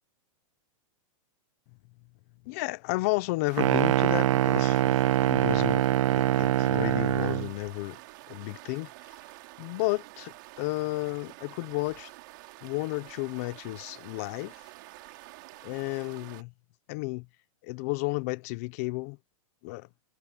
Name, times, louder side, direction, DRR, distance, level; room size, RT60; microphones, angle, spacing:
voice 1, 2.4-5.9 6.1-8.0 8.3-9.1 9.6-12.1 12.6-14.7 15.6-16.5 16.9-17.3 17.6-19.2 19.6-19.9, left 23 dB, 25° left, 0.6 m, -32 dB
sound 1, 3.5-16.4, right 21 dB, 35° right, 2.4 m, -48 dB
sound 2, 3.6-7.5, right 12 dB, 65° right, 0.7 m, -24 dB
supercardioid pair, 175°, 17 cm